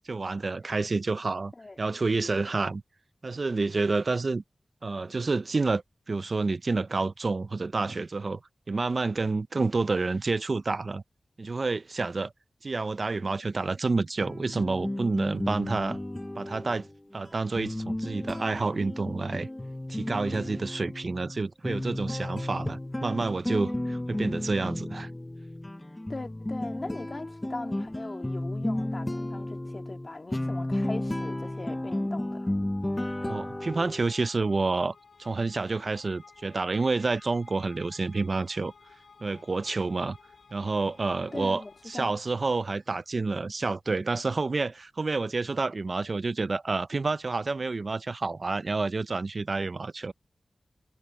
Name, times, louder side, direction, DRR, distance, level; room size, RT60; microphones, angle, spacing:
voice 1, 0.0-1.5 1.8-2.8 3.2-4.4 4.8-8.4 8.7-11.0 11.4-12.3 12.6-16.0 16.4-16.9 17.1-19.5 19.9-25.1 33.2-38.7 39.2-40.2 40.5-50.1, right 3 dB, 50° right, 0.4 m, -29 dB
sound 1, 14.2-34.0, left 1 dB, 15° left, 0.9 m, -33 dB
voice 2, 26.1-32.5 41.3-42.1, left 2 dB, 35° left, 2.1 m, -40 dB
sound 2, 30.3-43.1, left 5 dB, 90° left, 3.8 m, -55 dB
wide cardioid pair, 100°, 0 cm